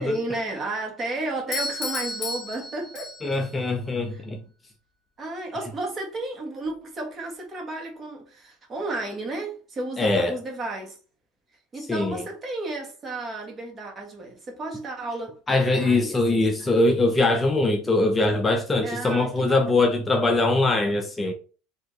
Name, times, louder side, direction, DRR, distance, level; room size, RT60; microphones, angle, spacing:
voice 1, 0.0-3.1 4.1-4.2 5.2-11.0 11.7-16.7 18.8-20.0, right 2 dB, 30° right, 1.5 m, -33 dB
Doorbell, 1.5-3.5, left 2 dB, 35° left, 1.7 m, -32 dB
voice 2, 3.2-4.4 10.0-10.4 11.9-12.2 15.5-21.3, left 2 dB, 15° left, 0.5 m, -22 dB
4.2 x 2.8 x 3.1 m
supercardioid pair, 110°, 0 cm